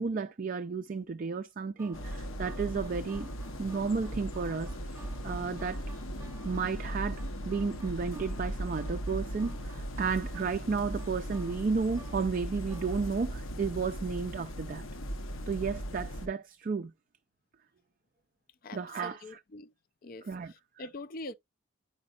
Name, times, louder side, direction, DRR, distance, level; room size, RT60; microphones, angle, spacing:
voice 1, 0.0-3.3 3.6-5.8 6.4-14.8 15.5-16.9 18.7-19.4 20.2-20.8, right 5 dB, 40° right, 0.3 m, -33 dB
sound 1, 1.8-14.0, right 2 dB, 15° right, 0.7 m, -55 dB
sound 2, 1.9-16.3, equal, 70° left, 0.9 m, -38 dB
voice 2, 18.6-19.7 20.0-21.3, left 2 dB, 40° left, 0.4 m, -44 dB
9.6 x 5.2 x 2.3 m
head